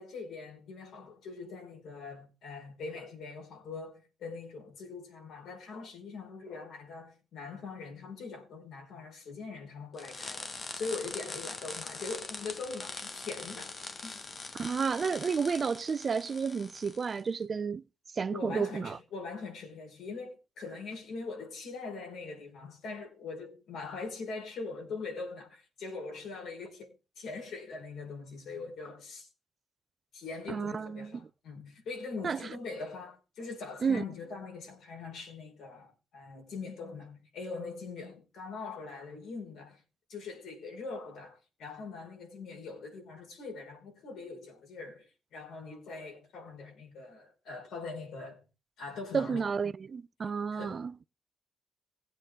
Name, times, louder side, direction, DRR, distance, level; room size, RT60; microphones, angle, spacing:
voice 1, 0.0-14.2 18.3-29.3 30.1-39.8 40.1-48.4 48.8-49.4 50.5-51.1, left 4 dB, 75° left, 4.9 m, -42 dB
Welding Torch, 10.0-17.2, left 3 dB, 35° left, 1.3 m, -42 dB
voice 2, 14.5-17.8 18.1-19.0 30.5-31.2 32.2-32.4 33.8-34.0 49.1-50.9, right 5 dB, 40° right, 0.5 m, -31 dB
17.5 x 8.2 x 3.7 m
cardioid pair, 90°, 0 cm